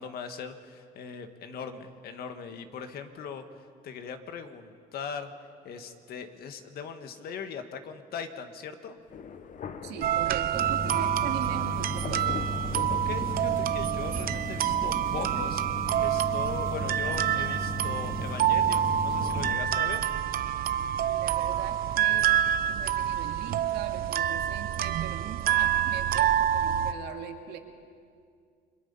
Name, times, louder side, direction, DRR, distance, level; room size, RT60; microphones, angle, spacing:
voice 1, 0.0-5.3 5.6-9.0 12.9-15.6 16.0-20.0, left 6 dB, 65° left, 7 dB, 1.7 m, -40 dB
Thunder, 9.1-13.9, left 6 dB, 50° left, 1.1 m, -42 dB
voice 2, 9.8-12.4 21.0-22.3 22.7-27.6, right 9 dB, 80° right, 3 dB, 2.4 m, -41 dB
sound 1, 10.0-26.9, right 10 dB, 60° right, 0.8 m, -27 dB
sound 2, 10.5-19.5, left 1 dB, 15° right, 2.1 m, -36 dB
29.0 x 22.5 x 5.6 m, 2.3 s
cardioid pair, 110°, 17 cm